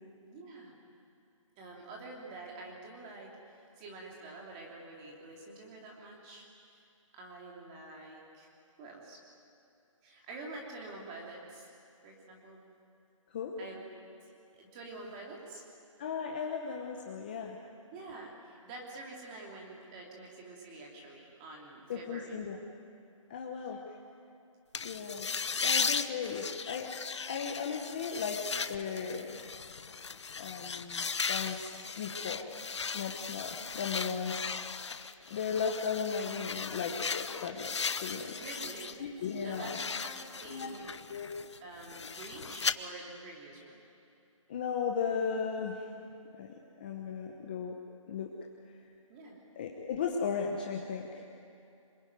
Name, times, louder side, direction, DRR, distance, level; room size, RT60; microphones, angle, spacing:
voice 1, 0.2-0.7 1.6-6.5 7.1-8.5 8.8-9.2 10.0-11.7 12.0-12.6 13.6-13.8 14.2-15.6 17.9-22.3 23.7-23.8 25.3-25.5 38.0-38.9 39.4-40.8 41.6-43.8 49.1-49.4, right 2 dB, 15° right, -1 dB, 2.9 m, -47 dB
voice 2, 16.0-17.6 21.9-22.6 23.3-23.8 24.8-25.3 25.6-26.9 27.3-29.4 30.4-32.5 32.9-34.9 35.3-38.3 39.0-39.8 40.5-40.7 41.1-41.3 44.5-45.9 46.4-46.5 46.8-47.8 48.1-48.3 49.6-51.3, left 6 dB, 15° left, 1 dB, 1.0 m, -36 dB
sound 1, 24.7-39.0 39.3-42.7, left 5 dB, 55° left, 1.0 m, -37 dB
26.5 x 22.0 x 9.4 m, 2.6 s
hypercardioid pair, 175°, 17 cm